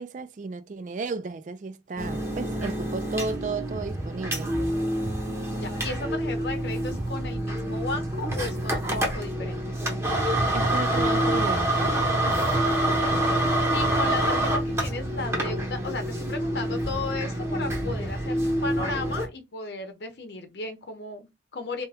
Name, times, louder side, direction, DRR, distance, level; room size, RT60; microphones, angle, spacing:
voice 1, 0.0-4.6 10.5-11.9, right 4 dB, 45° right, 0.3 m, -33 dB
sound 1, 2.0-19.3, right 1 dB, 15° right, 0.7 m, -27 dB
voice 2, 5.6-9.8 13.0-13.2 13.7-21.8, left 3 dB, 70° left, 0.7 m, -35 dB
2.9 x 2.2 x 3.4 m
head